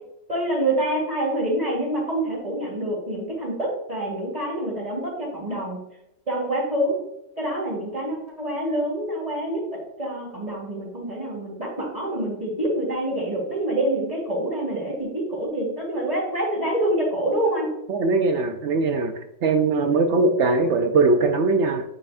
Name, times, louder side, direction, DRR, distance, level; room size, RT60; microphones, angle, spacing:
voice 1, 0.3-5.8 6.3-7.0 7.4-17.7, right 1 dB, 20° right, -8 dB, 2.4 m, -26 dB
voice 2, 17.9-19.1 19.4-21.8, right 3 dB, 75° right, 5 dB, 0.6 m, -20 dB
8.2 x 5.6 x 2.5 m, 0.85 s
omnidirectional pair, 1.9 m